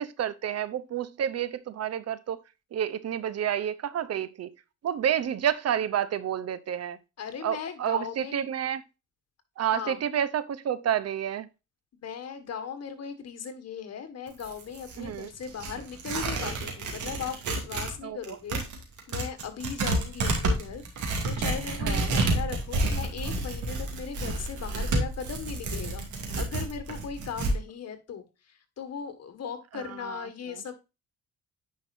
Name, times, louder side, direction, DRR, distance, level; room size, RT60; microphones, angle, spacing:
voice 1, 0.0-2.4 2.7-4.5 4.8-7.0 7.4-8.8 9.6-11.5 15.0-15.3 18.0-18.4 21.8-22.2 30.0-30.2, right 9 dB, 55° right, 0.7 m, -29 dB
voice 2, 7.2-8.5 9.6-10.0 12.0-18.6 19.1-20.8 21.2-26.0 26.4-30.7, left 7 dB, 55° left, 1.7 m, -38 dB
Tearing, 14.3-17.9 18.2-27.6, right 2 dB, 75° right, 2.5 m, -30 dB
10.0 x 5.2 x 2.6 m
cardioid pair, 90°, 30 cm